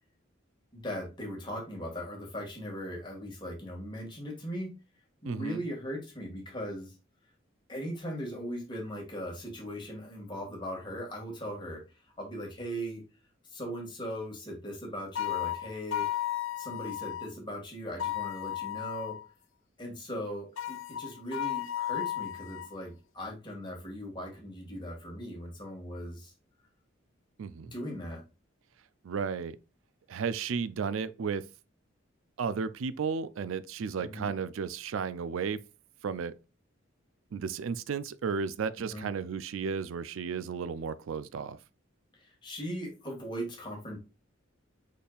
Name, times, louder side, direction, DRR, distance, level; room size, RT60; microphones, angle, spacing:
voice 1, 0.7-4.7 5.2-6.9 7.7-11.8 12.2-13.0 13.5-19.2 19.8-26.3 27.7-28.2 34.0-34.3 38.8-39.1 42.2-44.0, equal, 25° left, 1.8 m, -39 dB
voice 2, 5.2-5.6 27.4-27.7 29.0-29.6 30.1-31.5 32.4-35.6 36.0-36.4 37.3-41.6, right 6 dB, 80° right, 0.4 m, -33 dB
sound 1, 15.2-17.3 18.0-19.3 20.6-22.7, left 12 dB, 75° left, 0.5 m, -34 dB
5.2 x 4.3 x 2.3 m
head